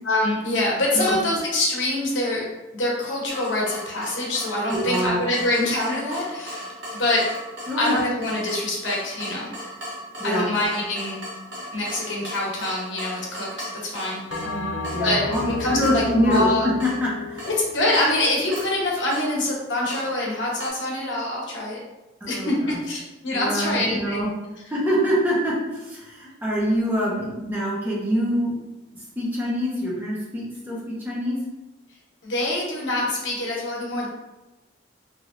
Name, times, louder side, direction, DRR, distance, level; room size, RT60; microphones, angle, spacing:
voice 1, 0.1-2.4 2.7-7.2 7.8-9.5 10.2-11.2 11.7-14.2 15.0-16.7 17.4-21.8 22.3-22.5 22.9-24.3 32.2-34.1, left 1 dB, 85° left, -3 dB, 0.9 m, -25 dB
Water tap faucet / Drip, 3.3-20.7, equal, 70° right, 1.0 m, -38 dB
voice 2, 4.7-5.2 7.7-8.0 10.2-10.4 14.4-17.5 22.2-22.8 23.3-24.3 24.7-28.5 28.9-31.4, equal, 10° right, -7 dB, 0.8 m, -25 dB
Bell, 14.3-18.9, left 3 dB, 60° left, 0.4 m, -33 dB
3.1 x 2.7 x 2.5 m, 1.0 s
head